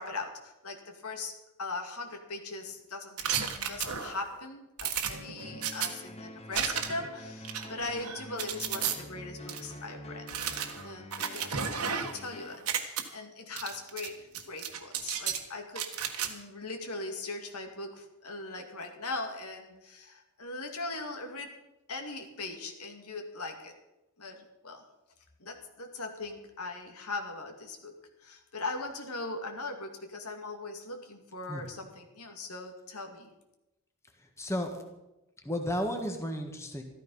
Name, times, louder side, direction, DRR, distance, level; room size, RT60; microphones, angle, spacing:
voice 1, 0.0-1.3 1.6-10.3 10.8-15.9 16.2-21.5 21.9-23.8 24.2-24.8 25.4-33.3, left 3 dB, 75° left, 4 dB, 2.1 m, -40 dB
sound 1, 3.2-4.3 4.8-5.9 6.5-7.1 7.4-8.9 9.5-9.6 10.3-12.3 12.5-13.0 13.6-14.1 14.3-15.4 15.7-16.3, right 8 dB, 75° right, 1.5 m, -33 dB
sound 2, 5.4-12.6, left 1 dB, 30° left, 1.1 m, -46 dB
voice 2, 34.4-34.8 35.4-36.8, equal, 15° left, 3 dB, 1.6 m, -33 dB
13.5 x 13.0 x 5.6 m, 0.96 s
head